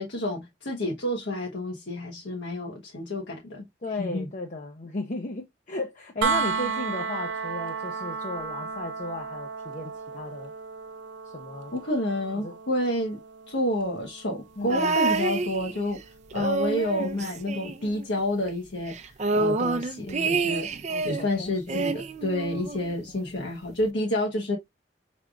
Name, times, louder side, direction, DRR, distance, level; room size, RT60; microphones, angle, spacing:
voice 1, 0.0-3.7 4.0-4.2 11.7-13.2 13.5-16.0 16.3-19.0 19.3-20.7 21.0-24.6, left 1 dB, 90° left, 1.1 m, -29 dB
voice 2, 3.8-10.5 11.2-11.7 12.3-12.6 14.6-15.0 16.9-17.3 20.0-20.4 20.9-21.8 23.1-23.3, left 2 dB, 45° left, 0.6 m, -36 dB
sound 1, 6.2-18.0 20.0-20.1, right 4 dB, 90° right, 0.6 m, -35 dB
sound 2, 14.7-16.0 16.3-18.2 18.5-18.6 18.9-21.3 21.7-22.9 23.8-23.9, right 3 dB, 40° right, 0.4 m, -28 dB
4.8 x 3.4 x 2.4 m
head